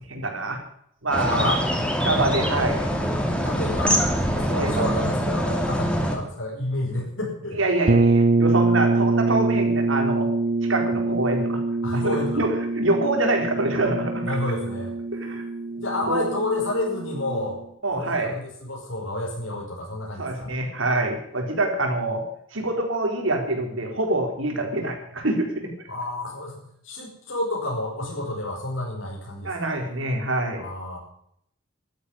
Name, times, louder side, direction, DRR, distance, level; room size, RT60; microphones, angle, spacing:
voice 1, 0.1-0.6 1.0-1.6 2.0-2.9 4.5-4.8 7.6-10.3 10.7-11.6 11.9-14.5 15.1-15.4 16.0-16.3 17.8-18.3 20.2-22.2 22.5-25.7 29.4-30.7, right 2 dB, 85° right, 3 dB, 4.1 m, -25 dB
sound 1, 1.1-6.2, equal, 5° left, 2.5 m, -24 dB
voice 2, 1.3-1.6 3.4-4.0 4.4-7.6 11.8-12.5 14.2-14.9 15.8-17.6 17.9-20.5 25.9-29.7 30.5-31.0, left 1 dB, 85° left, -3 dB, 5.4 m, -30 dB
sound 2, 7.9-17.5, right 3 dB, 45° right, 0.8 m, -24 dB
12.5 x 10.5 x 9.9 m, 0.70 s
head